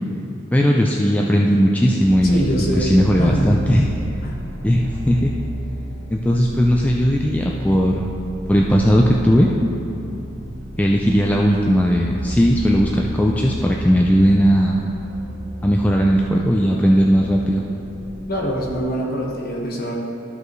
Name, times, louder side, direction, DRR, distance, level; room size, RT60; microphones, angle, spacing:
voice 1, 0.5-2.4 2.8-3.9 4.6-5.3 6.1-8.1 8.5-9.5 10.8-14.8 15.6-17.6, equal, 5° left, -1 dB, 0.3 m, -17 dB
sound 1, 2.0-18.8, equal, 45° right, 0.9 m, -32 dB
voice 2, 2.2-3.5 4.2-4.6 18.3-19.9, equal, 45° left, -2 dB, 1.3 m, -24 dB
13.5 x 5.3 x 3.1 m, 2.8 s
head